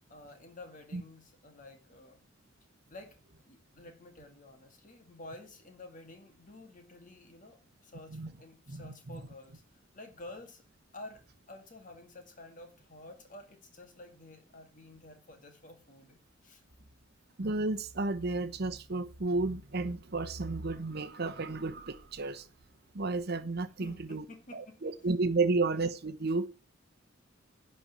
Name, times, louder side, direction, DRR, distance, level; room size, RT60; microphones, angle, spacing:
voice 1, 0.1-2.2 2.9-10.6 10.9-16.6 23.8-25.0, left 2 dB, 40° left, 2.1 m, -51 dB
voice 2, 17.4-22.5 22.9-24.2 24.5-26.5, right 3 dB, 55° right, 0.8 m, -32 dB
11.0 x 4.4 x 7.2 m
head